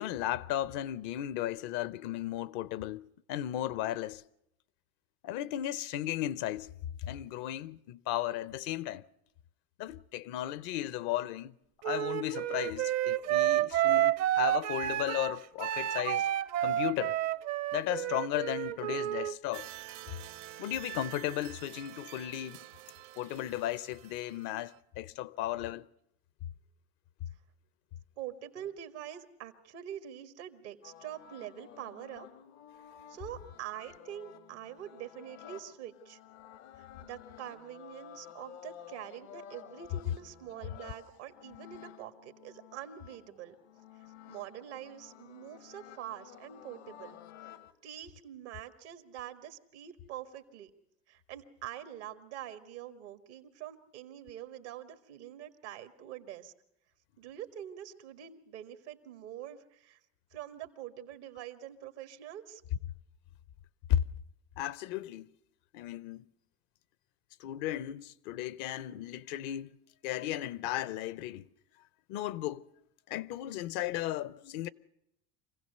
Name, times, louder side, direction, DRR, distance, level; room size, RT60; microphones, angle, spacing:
voice 1, 0.0-4.2 5.2-6.7 7.0-9.0 9.8-11.5 11.8-16.3 16.6-17.2 17.7-19.7 20.6-22.6 23.2-25.9 63.9-64.0 64.6-65.3 65.7-66.3 67.4-71.5 72.1-72.6 73.1-74.7, left 13 dB, 70° left, 0.8 m, -35 dB
Wind instrument woodwind instrument, 11.8-19.3, right 13 dB, 50° right, 0.7 m, -30 dB
sound 1, 19.5-24.8, right 16 dB, 70° right, 0.9 m, -48 dB
voice 2, 28.2-32.3 33.1-36.2 36.8-43.5 44.3-47.2 47.4-47.5 47.8-50.7 51.1-56.5 57.2-60.0 60.3-62.6, right 11 dB, 90° right, 1.6 m, -45 dB
sound 2, 30.8-47.7, left 10 dB, 85° left, 1.5 m, -53 dB
25.5 x 16.0 x 6.7 m
supercardioid pair, 90°, 33 cm